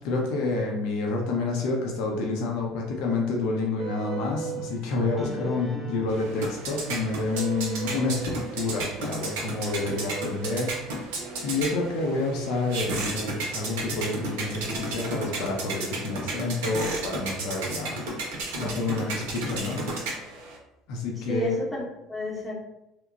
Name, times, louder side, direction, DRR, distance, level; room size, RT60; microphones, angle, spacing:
voice 1, 0.0-10.7 11.4-19.8 20.9-21.6, left 3 dB, 75° left, -1 dB, 0.5 m, -29 dB
sound 1, 3.8-18.3, right 3 dB, 25° right, 0.6 m, -41 dB
sound 2, 6.1-20.6, right 2 dB, 85° right, 0.6 m, -34 dB
voice 2, 21.3-22.5, left 1 dB, 10° left, -5 dB, 0.7 m, -32 dB
2.9 x 2.1 x 2.4 m, 0.91 s
supercardioid pair, 90°, 0 cm